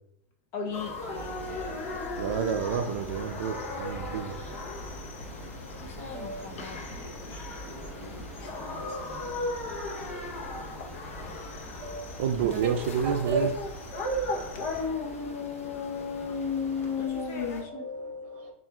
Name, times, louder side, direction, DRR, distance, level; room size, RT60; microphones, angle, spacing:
voice 1, 0.5-2.0 5.8-7.6 8.0-9.0 10.6-10.7 17.0-17.8, left 4 dB, 30° left, 2 dB, 0.6 m, -41 dB
sound 1, 0.6-17.1, right 1 dB, 10° right, 0.8 m, -47 dB
sound 2, 0.7-17.6, left 3 dB, 85° left, 0.8 m, -36 dB
Cricket, 1.1-14.9, left 1 dB, 50° left, 1.2 m, -45 dB
voice 2, 2.2-4.4 12.2-13.5, right 7 dB, 60° right, 5 dB, 0.4 m, -29 dB
voice 3, 8.8-9.2 9.8-10.8 11.1-11.4 11.8-12.2 12.4-12.7 13.0-13.6 13.9-14.2 17.0-17.3 17.6-18.5, right 2 dB, 30° right, 2 dB, 0.9 m, -37 dB
7.1 x 2.4 x 2.3 m, 0.81 s
supercardioid pair, 165°, 7 cm